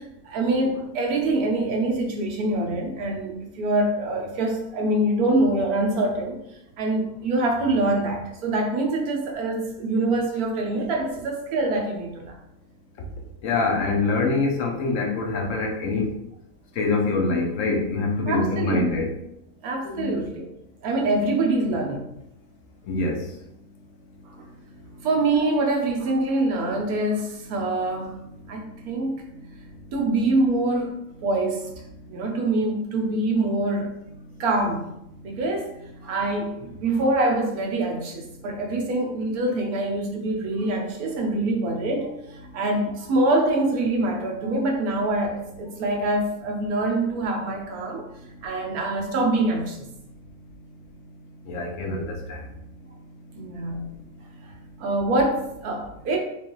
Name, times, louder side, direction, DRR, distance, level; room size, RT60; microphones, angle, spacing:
voice 1, 0.0-6.4 6.8-12.4 18.3-18.9 19.6-20.5 20.8-22.0 24.3-24.4 25.0-28.2 28.5-29.3 29.9-31.7 32.1-33.9 34.4-34.9 35.2-35.7 36.0-48.1 48.4-49.9 53.3-53.8 54.8-56.2, right 2 dB, 80° right, 1 dB, 1.3 m, -25 dB
voice 2, 13.4-16.1 16.8-19.1 19.8-20.2 22.9-23.2 51.5-52.4, left 3 dB, 65° left, 1 dB, 1.0 m, -25 dB
4.7 x 2.5 x 3.0 m, 0.81 s
omnidirectional pair, 1.5 m